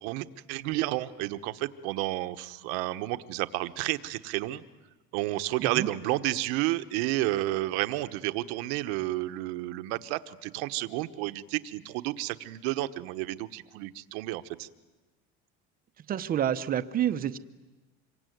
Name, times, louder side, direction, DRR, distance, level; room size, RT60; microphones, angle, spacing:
voice 1, 0.0-4.6 5.1-14.7, right 17 dB, 80° right, 11 dB, 1.2 m, -31 dB
voice 2, 5.6-5.9 16.1-17.4, right 10 dB, 30° right, 11 dB, 0.9 m, -28 dB
26.0 x 23.5 x 9.4 m, 1.1 s
cardioid pair, 160°, 32 cm